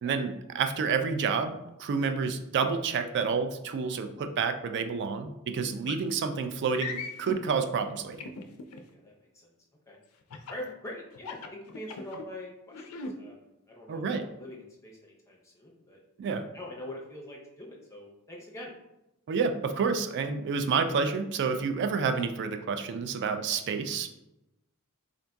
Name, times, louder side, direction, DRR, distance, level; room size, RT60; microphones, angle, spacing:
voice 1, 0.0-8.2 13.9-14.2 16.2-16.4 19.3-24.2, right 5 dB, 50° right, 8 dB, 0.3 m, -29 dB
sound 1, 5.9-6.1 6.7-7.4 8.2-8.8 10.3-10.6 11.1-12.2 12.7-13.1, left 4 dB, 70° left, 0.4 m, -38 dB
voice 2, 8.9-9.5 9.9-10.0 10.5-16.0 16.5-18.7, left 1 dB, 15° left, -2 dB, 0.6 m, -44 dB
3.7 x 2.6 x 2.2 m, 0.90 s
head